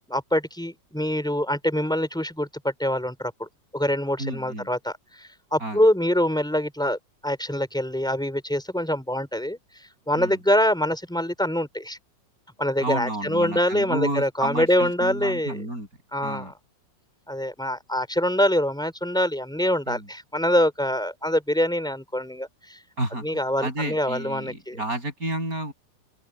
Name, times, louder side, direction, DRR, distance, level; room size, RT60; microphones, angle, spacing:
voice 1, 0.1-3.5 3.7-7.0 7.2-9.6 10.1-12.0 12.6-15.6 16.1-16.5 17.3-22.8 23.2-24.8, left 1 dB, ahead, 3.9 m, -25 dB
voice 2, 4.2-4.7 5.6-5.8 10.1-10.4 12.8-15.9 16.2-16.5 19.9-20.1 23.0-23.3 23.6-25.7, right 1 dB, 50° right, 7.9 m, -31 dB
open air
omnidirectional pair, 2.0 m